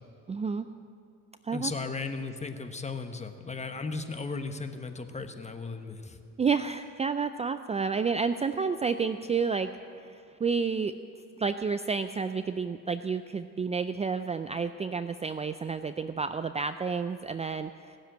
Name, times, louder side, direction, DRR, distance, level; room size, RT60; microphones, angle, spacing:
voice 1, 0.3-0.7 1.4-1.7 6.4-11.0 11.4-18.0, right 5 dB, 20° right, 10 dB, 0.4 m, -30 dB
voice 2, 1.5-6.2, left 4 dB, 20° left, 7 dB, 1.2 m, -36 dB
18.0 x 7.4 x 9.0 m, 2.6 s
cardioid pair, 90°, 30 cm